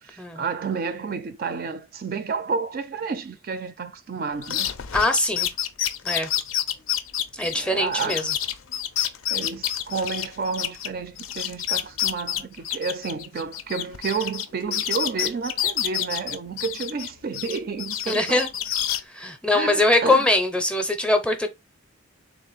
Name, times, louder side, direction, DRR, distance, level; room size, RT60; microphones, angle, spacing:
voice 1, 0.0-4.7 7.5-8.3 9.3-18.4 19.5-20.3, right 5 dB, 45° right, 0.4 m, -30 dB
sound 1, 4.4-10.9 11.2-14.5 14.7-17.1 17.3-19.0, left 11 dB, 75° left, 0.4 m, -28 dB
voice 2, 4.9-5.5 6.0-6.3 7.3-8.3 18.1-18.5 19.1-21.5, left 2 dB, 5° left, 0.5 m, -22 dB
3.6 x 2.5 x 3.9 m
head